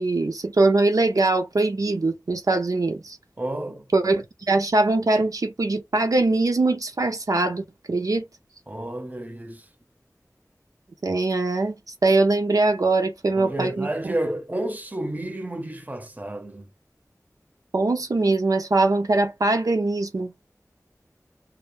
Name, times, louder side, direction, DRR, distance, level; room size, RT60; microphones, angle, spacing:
voice 1, 0.0-3.2 3.9-8.2 11.0-11.7 12.0-13.9 17.7-20.5, right 2 dB, 75° right, 0.5 m, -22 dB
voice 2, 3.4-3.9 8.7-9.7 13.3-16.7, right 1 dB, 25° right, 0.6 m, -31 dB
2.1 x 2.0 x 3.0 m
wide cardioid pair, 50°, 6 cm